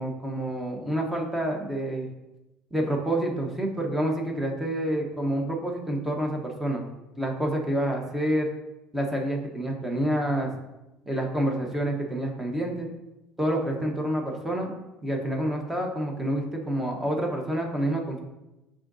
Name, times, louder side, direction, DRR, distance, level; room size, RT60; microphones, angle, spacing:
voice 1, 0.0-2.1 2.7-6.9 7.2-8.5 8.9-10.5 11.1-12.9 13.4-14.7 15.0-18.2, right 1 dB, 10° right, 1 dB, 1.1 m, -28 dB
11.0 x 3.7 x 2.7 m, 0.99 s
cardioid pair, 130°, 3 cm